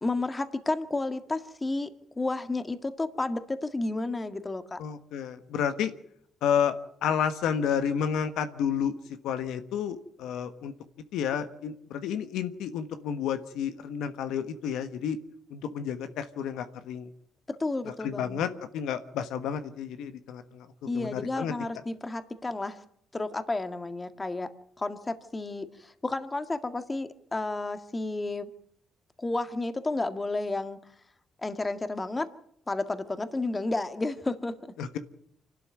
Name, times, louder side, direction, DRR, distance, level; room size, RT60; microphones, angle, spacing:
voice 1, 0.0-1.9 2.2-4.8 17.6-18.6 20.9-22.8 23.1-24.5 24.8-28.5 29.2-30.8 31.4-32.3 32.7-34.7, left 2 dB, 20° left, 9 dB, 1.8 m, -31 dB
voice 2, 4.8-5.9 6.4-6.7 7.0-8.9 9.2-10.7 11.1-15.2 15.5-17.1 18.0-20.7 20.9-21.5 34.8-35.0, left 8 dB, 85° left, 9 dB, 1.3 m, -30 dB
26.0 x 12.5 x 9.4 m, 0.68 s
cardioid pair, 80°, 0 cm